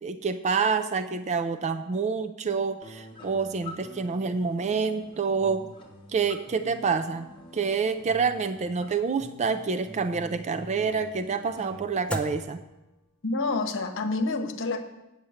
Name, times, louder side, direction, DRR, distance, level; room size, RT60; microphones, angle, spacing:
voice 1, 0.0-5.7 6.1-12.6, right 5 dB, 30° right, 9 dB, 0.4 m, -27 dB
sound 1, 2.8-11.8, left 1 dB, 20° left, 1.5 m, -47 dB
sound 2, 6.8-13.5, left 1 dB, 5° left, 0.8 m, -43 dB
voice 2, 13.2-14.8, left 3 dB, 60° left, 6 dB, 1.0 m, -28 dB
8.9 x 7.0 x 6.4 m, 0.95 s
head